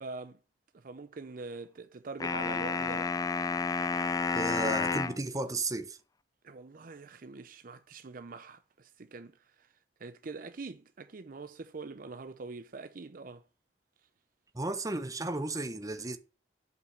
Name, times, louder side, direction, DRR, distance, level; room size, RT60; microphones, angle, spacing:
voice 1, 0.0-0.4 0.7-3.2 6.4-9.7 10.0-13.4, right 3 dB, 50° right, 0.5 m, -44 dB
sound 1, 2.2-5.2, left 4 dB, 20° left, 0.4 m, -30 dB
voice 2, 4.3-6.0 14.5-16.2, right 2 dB, 20° right, 0.9 m, -34 dB
8.1 x 5.5 x 7.2 m
head